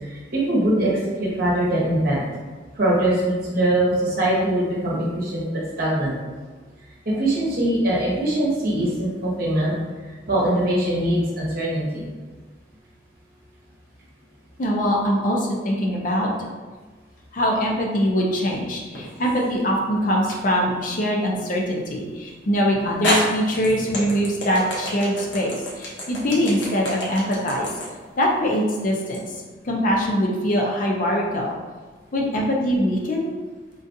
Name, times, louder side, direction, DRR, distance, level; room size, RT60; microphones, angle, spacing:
voice 1, 0.1-0.9 1.2-2.2 2.7-5.4 5.8-6.1 7.0-9.7 10.3-12.1, right 1 dB, 50° right, -6 dB, 1.0 m, -22 dB
voice 2, 14.6-16.3 17.3-27.7 28.2-29.3 29.6-31.6 32.1-33.3, equal, 45° left, -1 dB, 0.5 m, -23 dB
sound 1, 18.9-19.5 20.3-20.4 22.3-22.4 23.0-29.2, left 1 dB, 70° left, 0.8 m, -28 dB
3.8 x 2.4 x 2.6 m, 1.4 s
head